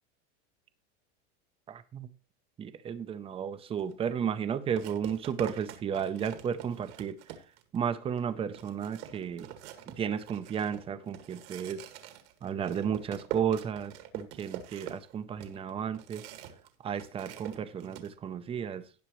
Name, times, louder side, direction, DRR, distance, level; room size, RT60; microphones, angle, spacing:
voice 1, 1.7-2.1 2.6-7.2 7.7-9.5 9.9-11.8 12.4-16.2 16.8-18.8, right 8 dB, 15° right, 12 dB, 0.5 m, -33 dB
sound 1, 3.8-3.9 4.8-7.8 8.2-8.3 8.5-16.7 16.9-18.1, right 10 dB, 70° right, 1.9 m, -44 dB
17.0 x 6.1 x 3.1 m, 0.34 s
supercardioid pair, 160°, 36 cm